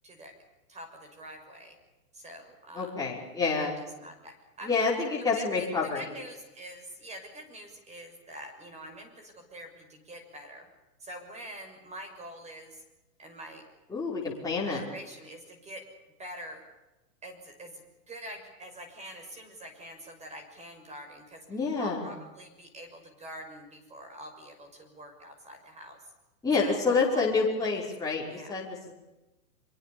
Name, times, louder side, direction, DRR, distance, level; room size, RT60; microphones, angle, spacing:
voice 1, 0.0-0.3 0.7-1.8 2.1-3.1 3.4-5.1 5.3-10.7 11.0-12.8 13.2-13.6 14.2-14.3 14.6-15.9 16.2-16.6 17.2-17.8 18.1-21.4 21.8-26.0 26.6-27.9 28.3-28.6, right 1 dB, 15° right, 4 dB, 6.3 m, -45 dB
voice 2, 2.7-3.7 4.6-6.1 13.9-14.8 21.5-22.0 26.4-28.9, left 4 dB, 5° left, -4 dB, 5.5 m, -28 dB
25.5 x 23.5 x 7.1 m, 1.0 s
hypercardioid pair, 140°, 48 cm